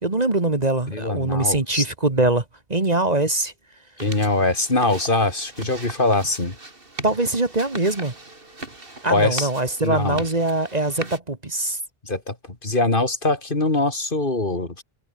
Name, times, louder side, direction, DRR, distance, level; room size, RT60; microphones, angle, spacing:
voice 1, 0.0-2.4 2.7-3.5 7.0-8.1 9.0-11.8, right 2 dB, 40° right, 2.1 m, -22 dB
voice 2, 0.9-1.8 4.0-6.6 9.1-9.5 9.8-10.2 12.0-12.4 12.6-14.8, left 2 dB, 50° left, 3.2 m, -22 dB
sound 1, 4.0-11.2, right 2 dB, 55° right, 3.7 m, -39 dB
omnidirectional pair, 1.1 m